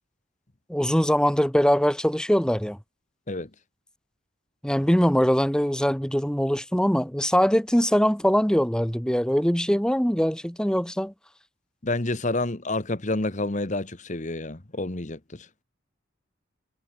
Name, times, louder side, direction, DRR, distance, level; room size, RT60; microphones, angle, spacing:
voice 1, 0.7-2.8 4.6-11.1, equal, 5° left, 1.4 m, -22 dB
voice 2, 11.8-15.5, left 2 dB, 40° left, 1.4 m, -29 dB
head